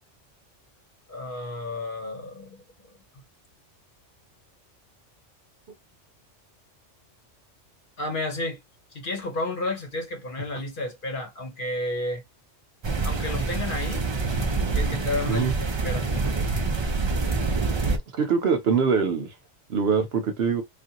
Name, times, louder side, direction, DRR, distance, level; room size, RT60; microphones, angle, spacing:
voice 1, 1.1-2.6 8.0-8.6 8.9-12.2 13.0-14.1 14.7-16.1, left 2 dB, 45° left, 1.0 m, -31 dB
sound 1, 12.8-18.0, right 3 dB, 40° right, 0.4 m, -26 dB
voice 2, 18.2-19.3 19.7-20.6, right 6 dB, 60° right, 0.8 m, -23 dB
3.5 x 2.5 x 2.8 m
omnidirectional pair, 1.3 m